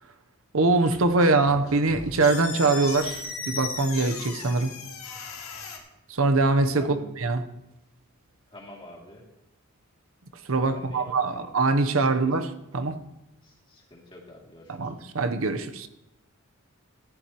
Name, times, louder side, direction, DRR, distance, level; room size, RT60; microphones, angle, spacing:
voice 1, 0.5-4.7 6.1-7.4 10.5-12.9 14.7-15.9, right 3 dB, 65° right, 0.8 m, -23 dB
sound 1, 0.7-5.8, left 5 dB, 70° left, 2.1 m, -37 dB
voice 2, 8.5-9.2 10.7-11.5 11.9-12.2 13.4-14.9, left 1 dB, 25° left, 2.5 m, -47 dB
14.5 x 11.5 x 3.0 m
head